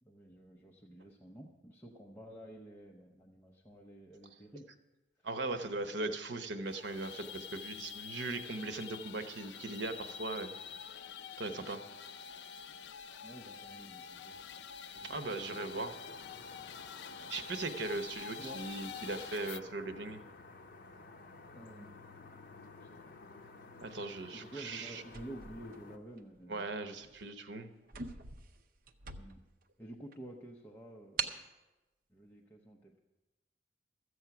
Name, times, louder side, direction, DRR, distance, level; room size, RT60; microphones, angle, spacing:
voice 1, 0.0-4.7 5.2-5.3 5.8-6.1 13.2-14.4 14.9-16.0 17.2-17.3 18.2-18.6 21.5-22.0 22.8-23.1 24.3-26.7 28.1-28.2 29.2-29.4 29.8-31.5 32.1-33.0, right 1 dB, 10° left, -1 dB, 0.8 m, -51 dB
voice 2, 5.2-10.5 11.4-11.8 15.0-15.9 17.3-20.2 23.8-25.0 26.5-27.7, right 2 dB, 80° right, 8 dB, 0.9 m, -39 dB
sound 1, 6.6-19.6, left 6 dB, 70° left, 0.4 m, -47 dB
sound 2, 15.3-26.0, left 3 dB, 55° left, 0.8 m, -53 dB
sound 3, 25.1-26.4 27.0-27.2 27.5-27.6 27.9-29.6 30.1-30.2 31.2-31.5, right 5 dB, 50° right, 0.7 m, -42 dB
14.0 x 8.0 x 5.9 m, 1.1 s
head